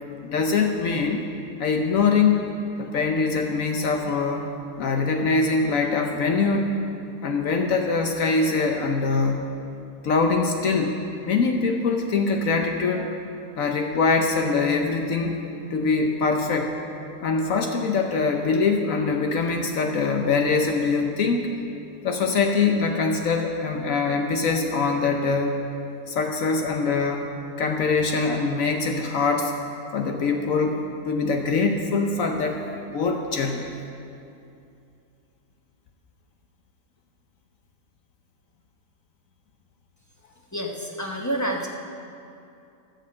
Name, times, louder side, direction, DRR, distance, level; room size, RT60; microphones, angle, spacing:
voice 1, 0.2-1.2 1.6-2.4 2.8-4.5 4.8-6.7 7.2-9.4 10.0-10.9 11.3-13.1 13.6-15.4 15.7-16.7 17.2-21.5 22.0-25.6 26.1-27.3 27.6-29.5 29.9-32.6 32.9-33.7, left 4 dB, 65° left, 3 dB, 1.1 m, -23 dB
voice 2, 40.5-41.7, right 1 dB, 15° left, 0 dB, 0.8 m, -28 dB
12.5 x 6.7 x 7.4 m, 2.6 s
omnidirectional pair, 1.6 m